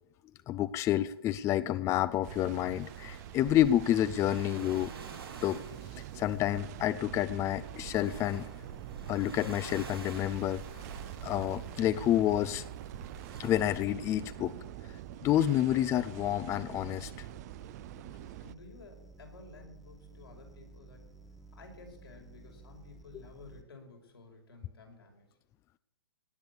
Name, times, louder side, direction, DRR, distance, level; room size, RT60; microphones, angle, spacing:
voice 1, 0.5-4.9 5.4-5.6 6.1-8.4 9.1-10.6 11.2-12.6 13.4-14.5 15.2-17.3, left 12 dB, 25° left, 15 dB, 0.5 m, -29 dB
sound 1, 2.2-18.5, right 14 dB, 45° right, 0.6 m, -45 dB
sound 2, 2.2-13.8, right 4 dB, 80° right, 7.1 m, -49 dB
sound 3, 5.7-23.6, right 3 dB, ahead, 1.5 m, -54 dB
voice 2, 18.0-21.1 21.5-25.3, left 3 dB, 85° left, 2 dB, 5.7 m, -53 dB
18.5 x 6.8 x 9.7 m, 0.80 s
hypercardioid pair, 130°, 12 cm